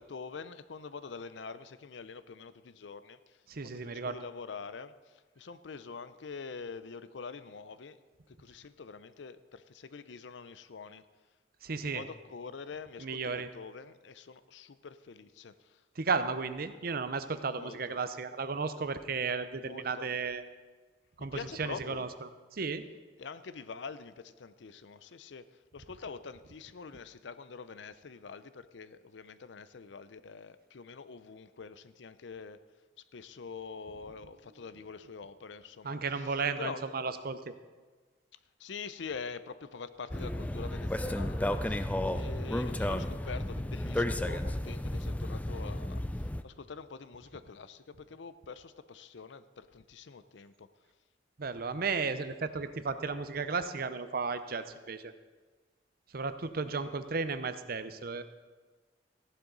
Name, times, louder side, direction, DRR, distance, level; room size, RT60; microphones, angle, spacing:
voice 1, 0.0-8.0 8.3-11.0 11.7-15.8 17.5-18.0 19.6-20.1 21.2-22.1 23.2-25.5 25.7-32.6 33.1-36.9 38.6-50.7 56.7-57.0, left 5 dB, 75° left, 14 dB, 0.6 m, -45 dB
voice 2, 3.5-4.2 11.6-12.0 13.0-13.5 16.0-20.4 21.2-22.8 35.8-37.4 51.4-55.1 56.1-58.2, right 4 dB, 55° right, 11 dB, 0.7 m, -34 dB
sound 1, 40.1-46.4, left 1 dB, 10° left, 0.4 m, -33 dB
15.0 x 11.0 x 4.0 m, 1.4 s
head